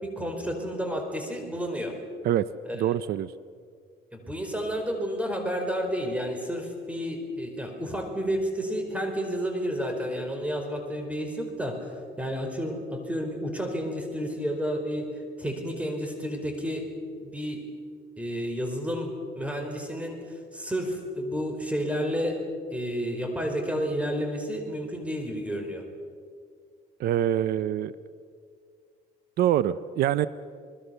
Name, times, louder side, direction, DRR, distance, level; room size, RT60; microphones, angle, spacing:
voice 1, 0.0-2.0 2.6-2.8 4.1-15.1 15.4-16.8 17.2-17.6 18.2-22.4 22.7-25.9, equal, 5° right, 4 dB, 4.6 m, -31 dB
voice 2, 2.7-3.3 27.0-27.9 29.4-30.3, right 11 dB, 70° right, 16 dB, 0.7 m, -25 dB
27.5 x 21.0 x 6.9 m, 2.1 s
cardioid pair, 110°, 17 cm